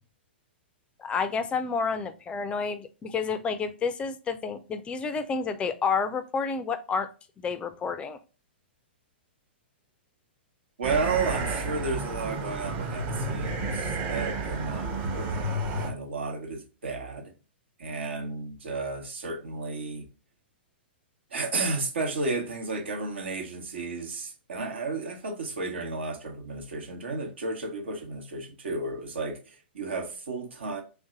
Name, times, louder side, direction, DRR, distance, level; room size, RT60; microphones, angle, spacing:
voice 1, 1.0-7.1 7.4-8.2, left 5 dB, 20° left, 0.3 m, -30 dB
sound 1, 10.8-15.9, right 2 dB, 35° right, 0.8 m, -31 dB
voice 2, 10.8-17.3 17.8-20.1 21.3-30.8, right 3 dB, 75° right, 1.0 m, -33 dB
3.4 x 2.6 x 3.7 m
hypercardioid pair, 120°, 6 cm